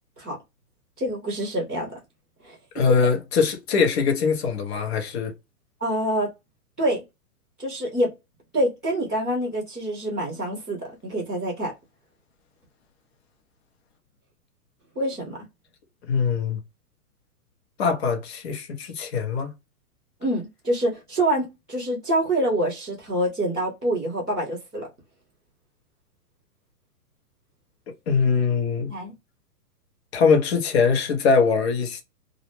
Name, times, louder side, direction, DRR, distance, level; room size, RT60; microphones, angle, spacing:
voice 1, 1.0-1.9 2.4-2.6 5.8-6.3 6.8-7.0 7.6-8.1 8.5-11.7 14.9-15.4 20.2-24.9 28.9-29.1, right 1 dB, 5° left, 0.3 m, -26 dB
voice 2, 2.7-5.3 16.1-16.6 17.8-19.5 28.1-28.9 30.1-32.0, left 5 dB, 45° left, 0.8 m, -22 dB
2.4 x 2.0 x 3.0 m
hypercardioid pair, 145°, 46 cm